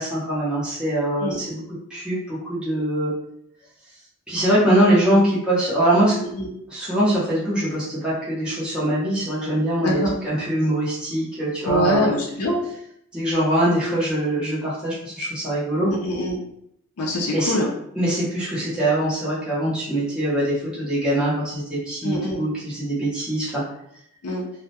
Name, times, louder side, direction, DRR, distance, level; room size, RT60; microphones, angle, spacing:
voice 1, 0.0-1.6 1.9-3.1 4.3-6.1 6.7-12.1 13.1-15.9 17.3-17.5 18.0-23.6, right 1 dB, 5° right, -9 dB, 0.7 m, -22 dB
voice 2, 9.8-10.1 11.7-12.6 15.9-16.4 17.0-17.7 22.0-22.4 24.2-24.4, equal, 90° left, -2 dB, 0.5 m, -24 dB
2.2 x 2.0 x 2.8 m, 0.73 s
head